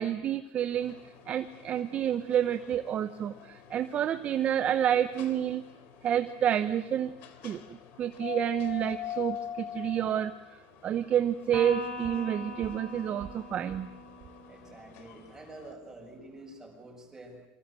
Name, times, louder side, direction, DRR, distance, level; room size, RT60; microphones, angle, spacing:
voice 1, 0.0-5.6 6.0-7.1 7.4-10.3 10.8-13.9, right 10 dB, 35° right, 10 dB, 1.0 m, -29 dB
sound 1, 0.8-15.7, left 10 dB, 60° left, 3.2 m, -45 dB
Electric guitar, 11.5-15.1, left 2 dB, 15° left, 7.2 m, -42 dB
voice 2, 14.5-17.4, right 2 dB, 10° right, 1 dB, 7.5 m, -48 dB
27.5 x 25.0 x 7.7 m, 0.86 s
cardioid pair, 155°, 4 cm